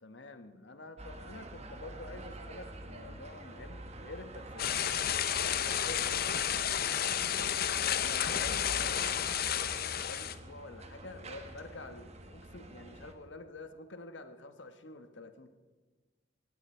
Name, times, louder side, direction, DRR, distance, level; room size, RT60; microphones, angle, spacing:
voice 1, 0.0-4.8 5.5-6.1 7.8-15.5, left 2 dB, 75° left, 9 dB, 1.3 m, -48 dB
sound 1, 1.0-13.1, right 1 dB, 35° right, 1.5 m, -48 dB
sound 2, 4.6-10.3, left 9 dB, 55° left, 0.8 m, -31 dB
18.5 x 16.0 x 4.5 m, 1.3 s
head